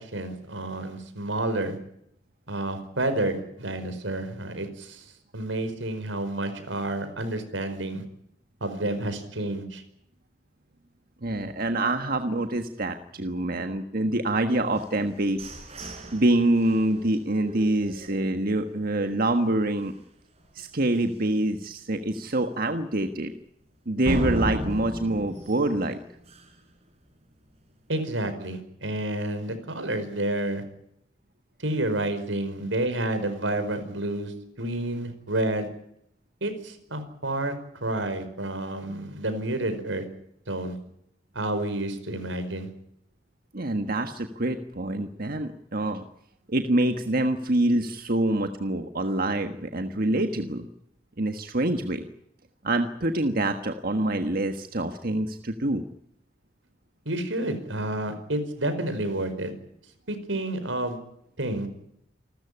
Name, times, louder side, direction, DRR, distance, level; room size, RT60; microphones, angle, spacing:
voice 1, 0.0-1.8 2.5-5.0 5.3-8.0 8.6-9.8 27.9-30.6 31.6-35.7 36.4-37.5 37.8-40.1 40.5-40.7 41.3-42.7 57.0-59.5 60.1-61.0 61.4-61.7, right 1 dB, 90° right, 10 dB, 5.1 m, -29 dB
voice 2, 11.2-15.4 16.1-19.9 20.5-23.3 23.9-26.0 43.5-46.0 46.5-50.7 51.2-52.1 52.6-55.8, right 1 dB, 50° right, 7 dB, 1.5 m, -26 dB
sound 1, 14.8-18.7 19.1-19.2 19.6-20.0 20.4-20.5 21.0-21.1 24.0-26.7, equal, 35° right, 5.7 m, -35 dB
28.5 x 14.0 x 10.0 m, 0.74 s
head